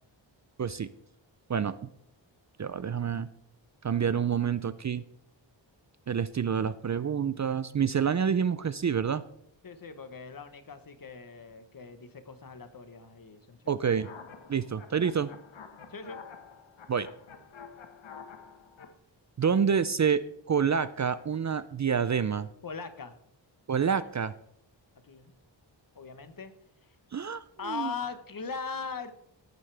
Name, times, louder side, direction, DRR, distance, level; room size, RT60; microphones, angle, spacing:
voice 1, 2.6-3.3 3.8-5.0 6.1-9.2 13.7-14.1 14.5-15.3 16.9-17.1 19.4-22.5 23.7-24.3 27.1-27.9, right 7 dB, 40° right, 15 dB, 0.4 m, -28 dB
voice 2, 9.6-13.8 15.9-16.2 22.6-23.1 25.0-25.3 25.9-26.5 27.6-29.1, left 5 dB, 45° left, 10 dB, 1.2 m, -40 dB
sound 1, 13.9-18.9, left 6 dB, 75° left, 1.3 m, -49 dB
17.0 x 9.3 x 3.4 m, 0.75 s
wide cardioid pair, 120°, 46 cm